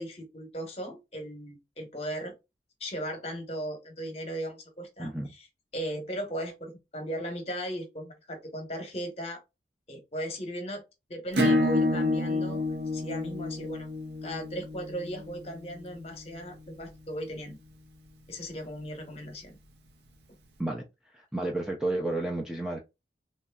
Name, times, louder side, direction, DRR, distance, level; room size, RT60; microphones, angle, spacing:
voice 1, 0.0-2.3 2.8-5.1 5.4-5.5 5.7-9.4 9.9-10.8 11.1-13.9 14.2-17.6 18.3-19.6, equal, 35° left, 0.9 m, -37 dB
voice 2, 5.0-5.3 20.6-20.8 21.1-22.8, right 2 dB, 5° right, 0.4 m, -31 dB
Acoustic guitar / Strum, 11.3-16.6, left 1 dB, 60° right, 0.6 m, -29 dB
3.0 x 2.6 x 2.3 m
head